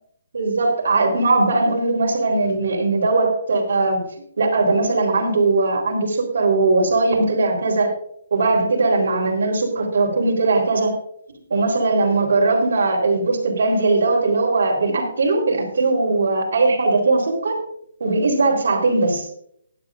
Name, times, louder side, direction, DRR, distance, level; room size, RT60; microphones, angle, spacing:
voice 1, 0.3-4.0 4.4-7.9 8.3-11.0 11.5-17.6 18.0-19.3, right 3 dB, 60° right, 0 dB, 3.9 m, -19 dB
16.0 x 10.5 x 2.6 m, 0.68 s
hypercardioid pair, 175°, 0 cm